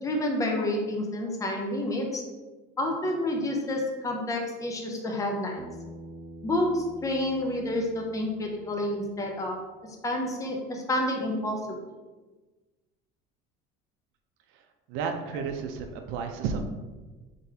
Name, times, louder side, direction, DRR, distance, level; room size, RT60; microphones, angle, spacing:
voice 1, 0.0-2.2 2.8-5.6 6.4-9.6 10.0-11.6, left 1 dB, 15° left, 1 dB, 0.6 m, -29 dB
Bass guitar, 5.6-9.9, right 1 dB, 25° right, 0.5 m, -47 dB
voice 2, 14.9-16.7, right 5 dB, 75° right, 5 dB, 0.6 m, -32 dB
3.9 x 3.4 x 2.8 m, 1.2 s
cardioid pair, 130°, 21 cm